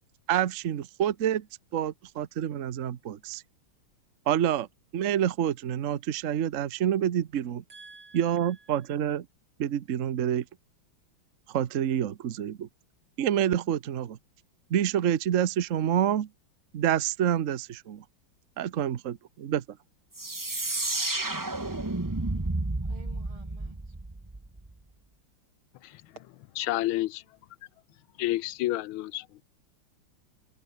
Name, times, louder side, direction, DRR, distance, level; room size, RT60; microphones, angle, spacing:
voice 1, 0.3-1.5 1.7-3.4 4.3-4.7 4.9-7.6 8.1-9.3 9.6-10.4 11.5-12.7 13.2-14.2 14.7-16.3 16.7-18.0 18.6-19.8, right 10 dB, 50° right, 1.0 m, -27 dB
voice 2, 7.7-8.8 22.8-24.0, right 4 dB, 85° right, 5.6 m, -51 dB
sound 1, 20.1-24.7, right 2 dB, 15° right, 0.9 m, -31 dB
voice 3, 26.6-27.2 28.2-29.3, left 16 dB, 85° left, 1.5 m, -29 dB
omnidirectional pair, 2.3 m